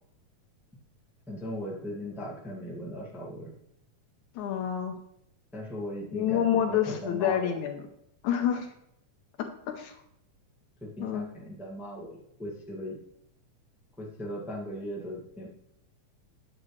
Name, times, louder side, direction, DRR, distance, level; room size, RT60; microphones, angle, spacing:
voice 1, 1.3-3.5 5.5-7.5 10.8-13.0 14.0-15.5, equal, ahead, -3 dB, 1.1 m, -38 dB
voice 2, 4.4-5.0 6.1-7.8 8.2-8.7 9.7-10.0 11.0-11.2, left 9 dB, 75° left, 4 dB, 2.0 m, -28 dB
10.0 x 8.8 x 3.2 m, 0.73 s
omnidirectional pair, 3.8 m